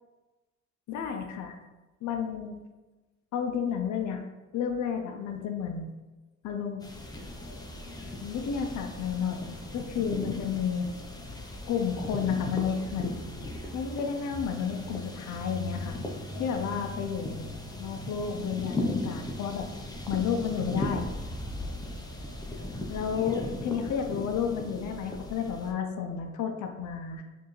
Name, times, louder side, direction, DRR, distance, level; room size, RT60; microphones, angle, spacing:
voice 1, 0.9-1.6 2.0-2.5 3.3-4.2 4.5-5.9 6.4-6.8 8.2-10.9 11.7-13.2 13.7-16.0 16.3-17.5 17.8-19.7 20.1-21.1 22.9-27.2, left 7 dB, 70° left, 5 dB, 0.6 m, -31 dB
sound 1, 6.8-25.7, left 1 dB, 15° left, 0.5 m, -37 dB
4.6 x 2.7 x 3.0 m, 1.2 s
cardioid pair, 90°, 30 cm